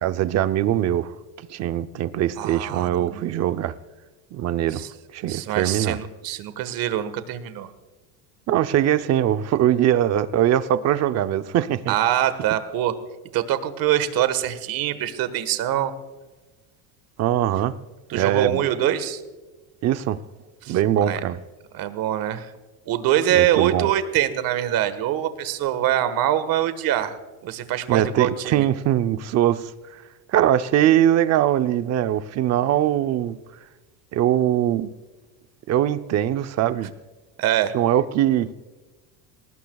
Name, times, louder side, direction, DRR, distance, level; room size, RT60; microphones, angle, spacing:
voice 1, 0.0-3.7 4.3-4.8 5.1-6.0 8.5-11.9 17.2-17.7 18.1-18.6 19.8-20.2 20.7-21.4 23.3-23.9 27.9-30.0 30.3-33.4 34.1-34.9 35.7-36.9 37.7-38.5, right 11 dB, 35° right, 11 dB, 0.6 m, -22 dB
voice 2, 2.4-3.2 4.7-4.9 5.3-7.7 11.9-12.9 13.3-15.9 18.1-19.2 20.6-21.2 21.7-22.5 22.9-27.2 27.4-28.6 37.4-37.7, right 12 dB, 50° right, 11 dB, 1.5 m, -24 dB
23.0 x 19.0 x 2.3 m, 1.2 s
cardioid pair, 150°, 43 cm